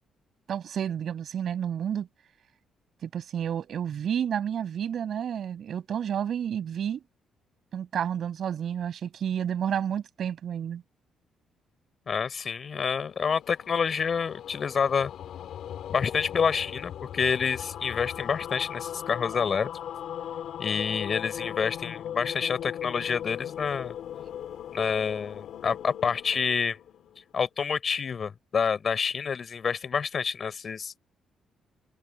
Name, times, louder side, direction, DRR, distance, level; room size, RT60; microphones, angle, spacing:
voice 1, 0.5-2.1 3.0-7.0 7.7-10.8, right 9 dB, 60° right, 6.9 m, -30 dB
voice 2, 12.1-15.1 15.9-19.7 20.6-23.9 24.7-26.8 27.3-31.0, left 6 dB, 45° left, 3.8 m, -28 dB
sound 1, 12.9-27.4, left 10 dB, 70° left, 3.8 m, -39 dB
cardioid pair, 90°, 0 cm